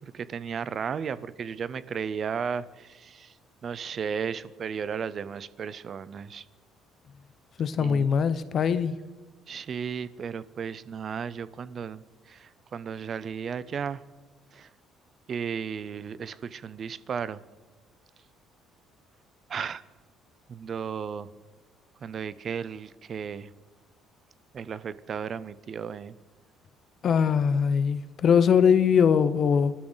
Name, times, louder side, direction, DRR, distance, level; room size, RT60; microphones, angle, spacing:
voice 1, 0.0-3.3 3.6-6.4 7.7-8.1 9.5-14.0 14.5-14.7 15.3-17.4 19.5-19.8 20.5-21.3 22.0-23.5 24.5-26.1, right 7 dB, 30° right, 17 dB, 0.5 m, -34 dB
voice 2, 7.6-8.9 27.0-29.7, left 7 dB, 35° left, 14 dB, 0.6 m, -22 dB
26.5 x 12.5 x 4.0 m, 1.2 s
cardioid pair, 180°, 0 cm